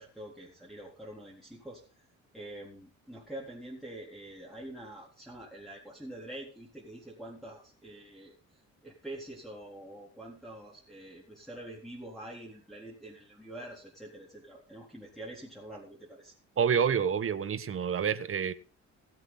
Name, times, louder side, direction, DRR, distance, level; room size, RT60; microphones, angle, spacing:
voice 1, 0.0-2.1 2.3-16.3, right 1 dB, ahead, 3.9 m, -46 dB
voice 2, 16.6-18.5, right 7 dB, 45° right, 1.3 m, -28 dB
19.5 x 7.8 x 4.1 m
cardioid pair, 90°, 30 cm